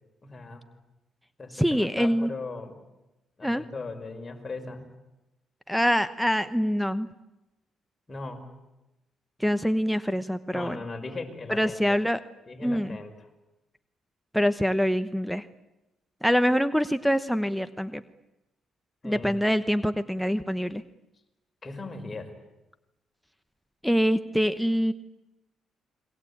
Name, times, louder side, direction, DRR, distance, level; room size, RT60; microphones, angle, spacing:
voice 1, 0.2-0.6 1.4-2.8 3.4-4.8 8.1-8.5 10.5-11.8 12.5-13.1 19.0-19.4 21.6-22.3, left 3 dB, 30° left, 5 dB, 5.4 m, -38 dB
voice 2, 1.5-2.3 3.4-3.6 5.7-7.1 9.4-10.8 11.5-12.2 12.6-13.0 14.3-15.5 16.2-18.0 19.0-20.8 23.8-24.9, equal, ahead, 10 dB, 1.0 m, -25 dB
29.5 x 22.0 x 8.6 m, 0.97 s
cardioid pair, 90°, 0 cm